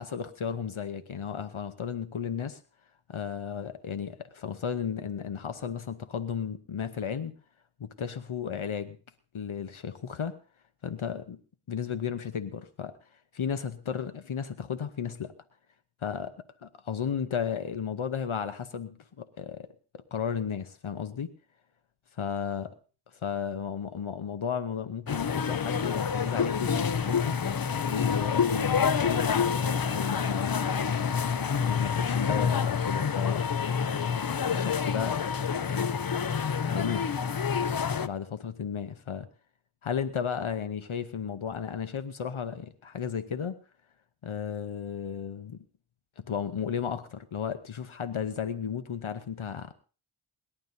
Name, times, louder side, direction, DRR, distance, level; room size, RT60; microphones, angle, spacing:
voice 1, 0.0-2.6 3.1-7.3 7.8-9.0 9.3-10.4 10.8-11.4 11.7-12.9 13.3-15.3 16.0-16.3 16.6-19.7 20.1-21.3 22.1-22.7 23.1-27.4 27.9-30.8 31.6-33.4 34.5-35.2 35.7-36.0 36.6-37.1 38.0-39.3 39.8-43.6 44.2-45.6 46.2-49.7, left 7 dB, 75° left, 11 dB, 0.9 m, -34 dB
sound 1, 25.1-38.1, left 6 dB, 45° left, 0.7 m, -28 dB
27.5 x 11.0 x 2.7 m, 0.37 s
wide cardioid pair, 60°, 50 cm